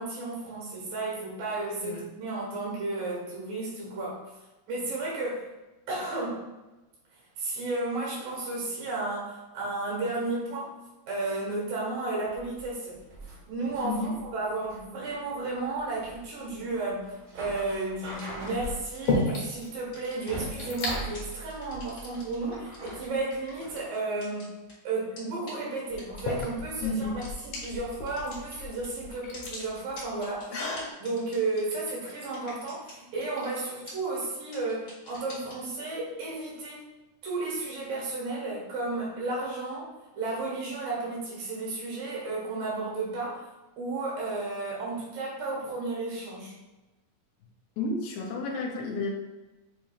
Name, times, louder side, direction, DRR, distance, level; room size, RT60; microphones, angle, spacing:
voice 1, 0.0-4.2 4.7-5.5 5.9-6.6 7.4-10.7 11.1-13.0 13.5-24.6 24.8-30.7 31.0-36.9 37.2-43.4 43.8-46.6, right 2 dB, 75° right, -5 dB, 3.3 m, -33 dB
sound 1, 12.3-23.8, right 1 dB, 55° right, 2.2 m, -43 dB
voice 2, 13.8-14.2 26.8-27.2 47.8-49.1, left 2 dB, 85° left, 0 dB, 2.3 m, -31 dB
sound 2, 17.4-17.8 18.6-19.7 20.0-20.1 20.3-21.0 21.8-21.9 22.5-23.4 25.1-25.2 25.9-30.9, left 2 dB, 65° left, 2.2 m, -33 dB
sound 3, 18.2-18.5 18.9-19.2 19.6-20.8 21.1-22.3 22.7-24.7 25.2-25.3 25.5-25.6 26.0-26.4 26.8-26.9 27.2-27.3 27.6-27.7 27.9-28.9 29.3-32.9 33.2-33.6 33.9-34.0 34.2-34.3 34.5-35.5, left 2 dB, 45° left, 1.5 m, -47 dB
7.0 x 3.0 x 2.4 m, 1.1 s
omnidirectional pair, 4.1 m